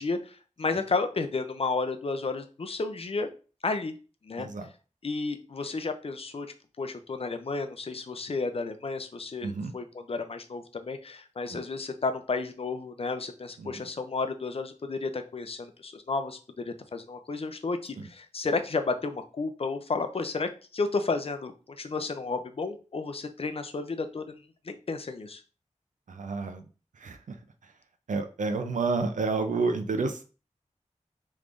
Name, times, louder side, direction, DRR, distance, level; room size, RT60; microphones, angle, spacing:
voice 1, 0.0-3.3 3.6-3.9 4.2-4.5 5.0-6.5 6.8-24.4 24.6-25.4, left 3 dB, 50° left, 7 dB, 0.5 m, -32 dB
voice 2, 4.4-4.7 9.4-9.7 11.5-11.6 13.6-13.9 18.0-18.1 26.1-26.7 27.0-27.4 27.6-27.7 28.1-30.2, right 4 dB, 80° right, 7 dB, 0.5 m, -30 dB
3.5 x 3.1 x 2.5 m, 0.35 s
wide cardioid pair, 70°, 13 cm